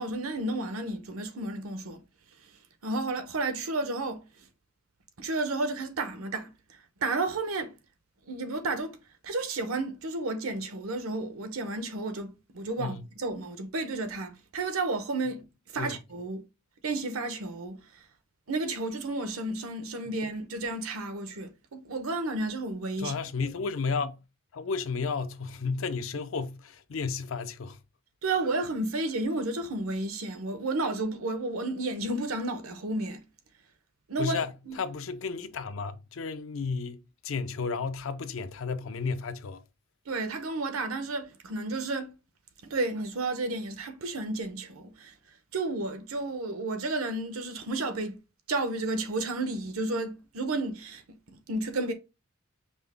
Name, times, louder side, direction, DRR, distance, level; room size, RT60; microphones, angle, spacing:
voice 1, 0.0-2.0 2.4-2.5 2.8-4.5 5.2-7.7 8.3-9.0 9.2-15.4 15.7-16.4 16.8-18.0 18.5-23.1 28.2-33.2 34.1-34.4 34.7-34.8 40.1-42.1 42.6-45.1 45.5-48.2 48.5-51.9, right 2 dB, 90° right, 0.8 m, -32 dB
voice 2, 23.0-24.2 24.5-27.8 34.2-39.6, left 4 dB, 70° left, 0.5 m, -33 dB
5.2 x 2.1 x 3.3 m
head